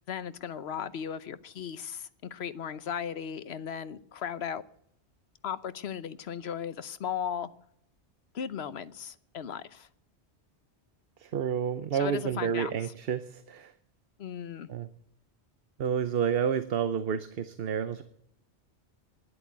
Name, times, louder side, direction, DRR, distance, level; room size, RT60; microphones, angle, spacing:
voice 1, 0.1-4.6 5.4-7.5 8.3-9.9 11.9-12.8 14.2-14.7, left 8 dB, 70° left, 14 dB, 1.1 m, -36 dB
voice 2, 11.2-13.7 14.7-14.9 15.8-18.0, right 8 dB, 60° right, 12 dB, 0.9 m, -30 dB
12.5 x 11.0 x 9.4 m, 0.69 s
omnidirectional pair, 1.1 m